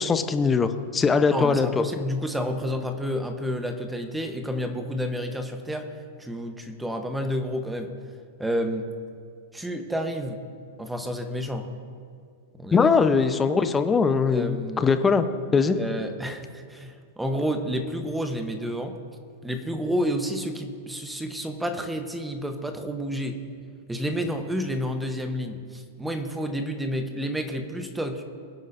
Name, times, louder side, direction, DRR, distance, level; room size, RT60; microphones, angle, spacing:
voice 1, 0.0-1.8 12.7-15.2 15.5-15.8, left 5 dB, 20° left, 9 dB, 0.8 m, -21 dB
voice 2, 1.3-5.9 6.2-7.9 8.4-8.9 9.5-10.4 10.8-11.7 12.6-12.9 14.3-14.9 15.8-19.0 19.4-23.4 23.9-28.2, equal, 5° right, 6 dB, 1.0 m, -30 dB
22.5 x 9.2 x 2.6 m, 2.1 s
hypercardioid pair, 105°, 0 cm